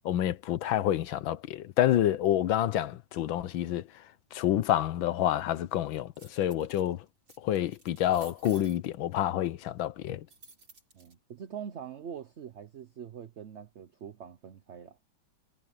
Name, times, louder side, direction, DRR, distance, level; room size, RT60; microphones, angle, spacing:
voice 1, 0.0-3.9 4.3-7.0 7.4-10.3, left 12 dB, 75° left, 1.6 m, -28 dB
sound 1, 6.2-6.9 7.3-8.8 10.3-11.1, right 3 dB, 75° right, 7.1 m, -53 dB
voice 2, 10.9-15.0, right 8 dB, 60° right, 0.7 m, -43 dB
omnidirectional pair, 2.2 m